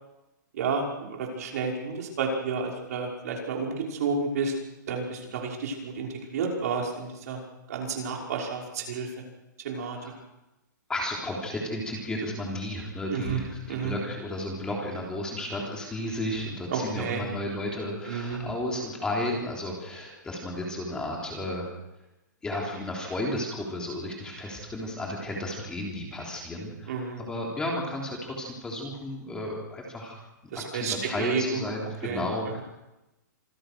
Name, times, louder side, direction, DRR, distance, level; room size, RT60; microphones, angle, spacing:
voice 1, 0.5-4.5 4.9-7.4 7.7-9.1 9.6-10.0 13.1-13.4 13.7-13.9 16.7-17.2 18.1-18.4 26.9-27.2 30.5-31.6 32.0-32.2, right 5 dB, 55° right, 0 dB, 5.8 m, -31 dB
voice 2, 10.9-21.7 22.4-30.2 30.5-32.6, left 1 dB, 10° left, -2 dB, 3.6 m, -33 dB
26.5 x 16.0 x 6.3 m, 0.97 s
hypercardioid pair, 165°, 10 cm